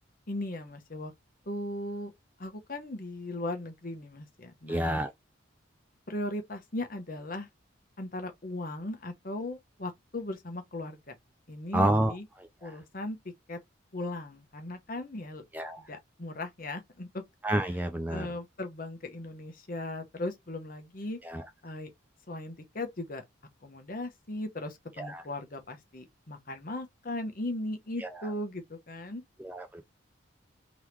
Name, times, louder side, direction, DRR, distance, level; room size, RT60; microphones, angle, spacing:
voice 1, 0.3-1.1 1.5-2.1 2.4-5.0 6.1-7.5 8.0-11.1 11.5-12.3 12.6-13.2 13.5-13.6 13.9-15.4 15.8-17.2 17.6-17.7 18.1-21.2 21.6-21.9 22.3-23.2 23.6-29.2, left 1 dB, 45° left, 1.0 m, -37 dB
voice 2, 4.7-5.1 11.7-12.7 15.5-15.8 17.4-18.3 21.2-21.5 25.0-25.2 28.0-28.1 29.4-29.8, right 1 dB, 10° right, 0.3 m, -29 dB
3.7 x 3.0 x 3.1 m
head